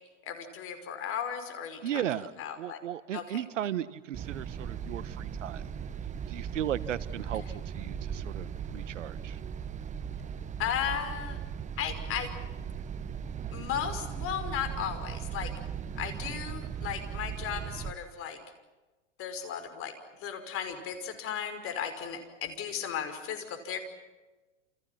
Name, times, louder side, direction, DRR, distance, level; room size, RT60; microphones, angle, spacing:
voice 1, 0.2-2.0 2.4-2.8 3.1-3.4 10.6-11.4 11.8-12.3 13.5-15.5 15.9-18.4 19.2-19.9 20.2-23.8, left 8 dB, 35° left, 9 dB, 5.7 m, -35 dB
voice 2, 1.8-2.3 2.6-5.7 6.3-7.4 7.7-9.4, right 11 dB, 75° right, 16 dB, 1.6 m, -35 dB
sound 1, 4.1-17.9, right 8 dB, 20° right, 1.3 m, -38 dB
29.5 x 28.5 x 6.0 m, 1.2 s
hypercardioid pair, 120°, 37 cm